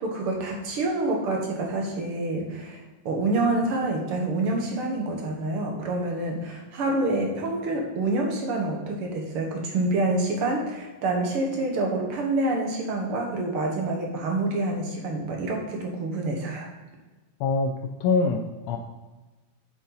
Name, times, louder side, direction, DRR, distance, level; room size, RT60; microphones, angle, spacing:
voice 1, 0.0-16.7, right 2 dB, 55° right, 1 dB, 1.9 m, -27 dB
voice 2, 17.4-17.7 18.0-18.8, left 4 dB, 85° left, 2 dB, 1.5 m, -24 dB
7.5 x 7.2 x 4.0 m, 1.2 s
omnidirectional pair, 3.7 m